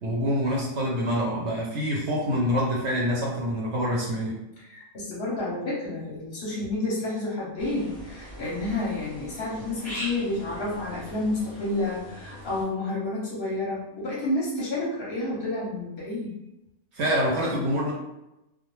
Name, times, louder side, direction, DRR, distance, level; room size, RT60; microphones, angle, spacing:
voice 1, 0.0-4.4 16.9-17.9, equal, 65° right, -4 dB, 0.8 m, -26 dB
voice 2, 4.6-16.3, left 2 dB, 55° left, -6 dB, 0.7 m, -30 dB
sound 1, 7.6-12.6, equal, 15° left, 0.3 m, -41 dB
2.2 x 2.1 x 3.0 m, 0.92 s
omnidirectional pair, 1.5 m